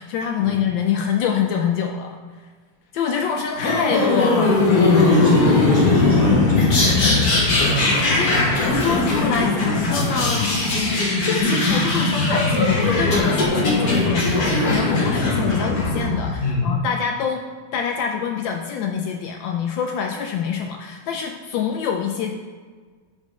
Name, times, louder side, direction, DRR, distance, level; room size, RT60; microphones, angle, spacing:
voice 1, 0.0-2.2 2.9-4.8 8.0-8.4 8.7-10.4 11.0-17.4 17.7-22.4, left 7 dB, 75° left, 3 dB, 1.1 m, -25 dB
sound 1, 3.6-16.3, left 2 dB, 50° left, 1.4 m, -19 dB
voice 2, 4.9-8.6 16.4-16.7, left 3 dB, 30° left, -8 dB, 1.3 m, -24 dB
5.3 x 5.2 x 5.1 m, 1.5 s
omnidirectional pair, 2.4 m